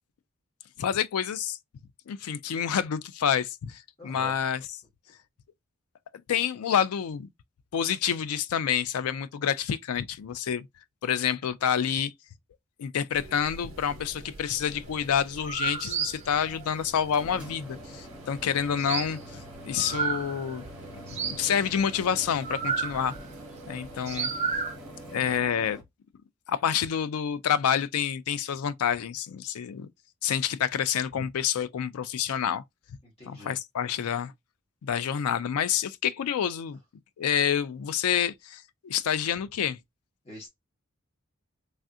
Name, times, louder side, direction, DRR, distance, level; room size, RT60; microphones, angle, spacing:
voice 1, 0.8-1.6 2.1-4.6 6.3-7.3 7.7-10.7 11.0-12.1 12.8-20.7 21.1-23.1 23.7-24.3 25.1-25.8 26.5-29.9 30.2-32.6 33.3-34.3 34.8-36.8 37.2-39.8, left 8 dB, 90° left, 0.4 m, -28 dB
voice 2, 4.0-4.4 33.0-33.6 40.2-40.5, left 2 dB, 25° left, 1.1 m, -45 dB
sound 1, 13.1-25.4, right 3 dB, 70° right, 0.8 m, -47 dB
sound 2, 14.7-14.8 15.2-20.7 20.9-23.4 23.8-24.7, right 6 dB, 30° right, 0.5 m, -32 dB
sound 3, 16.9-25.8, left 1 dB, 5° right, 1.0 m, -46 dB
3.2 x 2.4 x 2.6 m
head